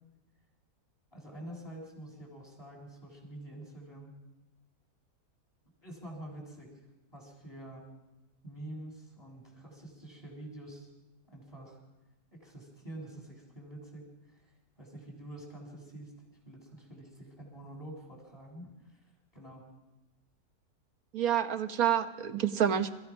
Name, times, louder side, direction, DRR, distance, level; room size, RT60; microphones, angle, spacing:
voice 1, 1.1-4.1 5.8-6.7 7.1-7.9 8.4-10.9 11.3-11.8 12.3-16.1 16.5-19.0 19.3-19.7, right 1 dB, 15° left, -1 dB, 7.2 m, -47 dB
voice 2, 21.1-22.9, right 9 dB, 70° right, 8 dB, 1.6 m, -28 dB
30.0 x 15.5 x 6.2 m, 1.0 s
omnidirectional pair, 1.6 m